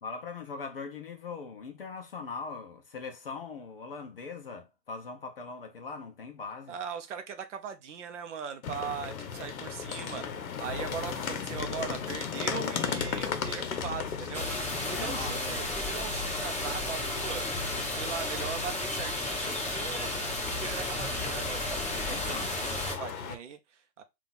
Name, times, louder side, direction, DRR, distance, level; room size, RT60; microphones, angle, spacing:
voice 1, 0.0-6.8 14.9-15.5 21.9-22.5, left 4 dB, 40° left, 0.5 m, -41 dB
voice 2, 6.7-10.2 10.6-14.5 14.8-17.5 17.9-24.0, right 7 dB, 50° right, 0.6 m, -40 dB
sound 1, 8.6-23.3, left 7 dB, 60° left, 0.9 m, -37 dB
sound 2, 10.6-19.8, left 1 dB, 20° right, 1.2 m, -45 dB
sound 3, 14.3-22.9, left 1 dB, ahead, 1.7 m, -33 dB
3.7 x 2.4 x 3.9 m
hypercardioid pair, 155°, 48 cm